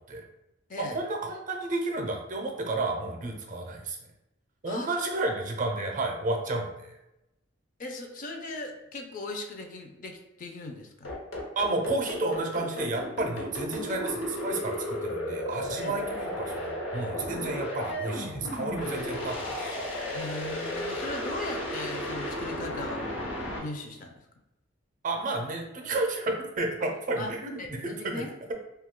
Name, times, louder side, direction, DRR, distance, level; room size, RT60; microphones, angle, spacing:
voice 1, 0.8-4.0 4.6-7.0 11.6-19.8 25.0-28.2, right 2 dB, 45° right, 3 dB, 0.5 m, -31 dB
voice 2, 7.8-11.1 15.8-16.0 20.1-23.3 23.6-24.2 27.2-27.3 27.6-28.3, left 2 dB, 45° left, 4 dB, 0.4 m, -38 dB
sound 1, 11.0-23.6, left 1 dB, 80° left, 0.8 m, -34 dB
2.7 x 2.3 x 3.6 m, 0.91 s
head